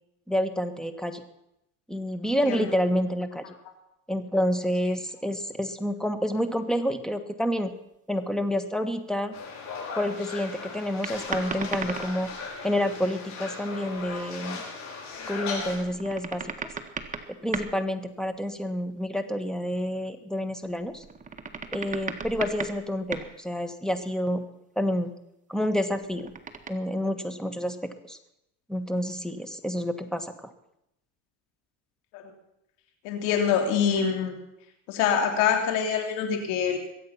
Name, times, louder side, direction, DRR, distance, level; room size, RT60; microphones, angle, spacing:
voice 1, 0.3-1.2 1.9-3.5 4.1-7.7 8.1-9.3 10.0-12.3 12.6-14.6 15.3-16.4 17.4-21.0 21.7-24.4 24.7-25.1 25.5-26.3 26.7-28.2 28.7-30.5, equal, ahead, 8 dB, 1.5 m, -28 dB
sound 1, 9.3-15.8, left 4 dB, 50° left, 5.5 m, -37 dB
sound 2, 11.0-12.6 14.0-14.1 15.6-17.9 20.7-23.4 25.9-26.7, right 5 dB, 20° right, 1.5 m, -37 dB
voice 2, 33.0-34.3 34.9-36.8, left 7 dB, 85° left, 4 dB, 3.2 m, -25 dB
22.5 x 8.6 x 5.9 m, 0.82 s
supercardioid pair, 110°, 35 cm